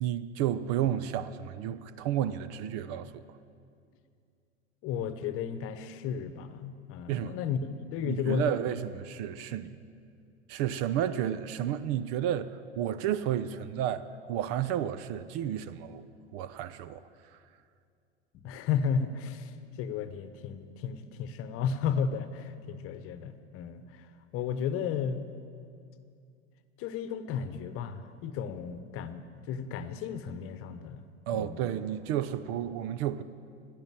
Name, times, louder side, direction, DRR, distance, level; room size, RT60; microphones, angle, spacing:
voice 1, 0.0-3.2 7.1-7.4 8.0-9.8 10.5-17.0 17.3-17.4 31.3-33.2, right 10 dB, 45° right, 15 dB, 0.7 m, -32 dB
voice 2, 4.8-8.5 18.3-25.2 26.8-31.0 31.3-31.7, left 7 dB, 40° left, 12 dB, 1.1 m, -34 dB
16.0 x 11.0 x 7.4 m, 2.4 s
figure-of-eight pair, 85°, 34 cm